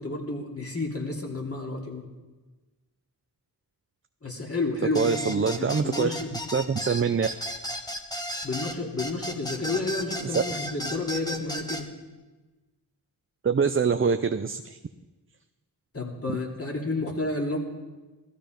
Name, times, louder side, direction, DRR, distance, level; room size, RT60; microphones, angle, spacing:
voice 1, 0.0-2.1 4.2-6.3 8.4-11.9 15.9-17.6, left 3 dB, 35° left, 0 dB, 2.9 m, -31 dB
sound 1, 4.9-11.8, equal, 10° left, 1.4 m, -34 dB
voice 2, 5.0-6.1 6.5-7.3 10.2-10.4 13.4-14.6, right 5 dB, 30° right, 8 dB, 0.5 m, -24 dB
16.0 x 14.0 x 5.3 m, 1.2 s
wide cardioid pair, 85°, 42 cm